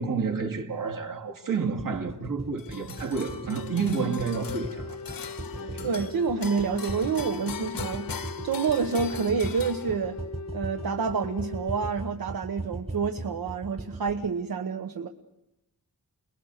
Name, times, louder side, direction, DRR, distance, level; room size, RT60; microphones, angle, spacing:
voice 1, 0.0-5.0 5.5-6.1, right 5 dB, 70° right, 2.6 m, -30 dB
sound 1, 1.8-14.3, right 2 dB, 20° right, 1.2 m, -39 dB
sound 2, 2.6-10.3, left 7 dB, 85° left, 1.2 m, -41 dB
Wind instrument woodwind instrument, 3.3-11.9, left 4 dB, 60° left, 0.8 m, -41 dB
voice 2, 5.8-8.1 8.4-10.2 10.5-15.1, right 5 dB, 85° right, 1.2 m, -28 dB
29.5 x 21.5 x 6.6 m
wide cardioid pair, 175°, 34 cm